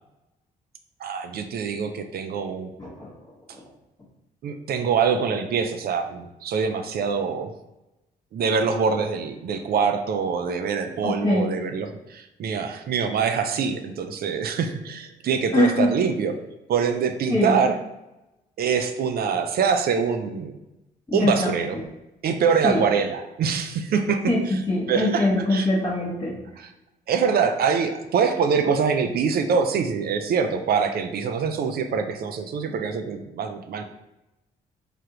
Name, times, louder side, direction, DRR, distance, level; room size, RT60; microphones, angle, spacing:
voice 1, 1.0-2.7 4.4-7.5 8.3-16.3 16.7-17.7 18.6-20.5 21.1-21.8 22.2-24.2 24.9-25.7 27.1-33.9, right 6 dB, 50° right, 6 dB, 0.4 m, -24 dB
voice 2, 2.8-3.6 11.0-11.5 15.5-16.0 17.3-17.6 21.1-21.8 22.6-22.8 24.3-26.4, left 1 dB, 15° left, -6 dB, 0.8 m, -23 dB
3.4 x 2.3 x 2.8 m, 0.94 s
hypercardioid pair, 45°, 20 cm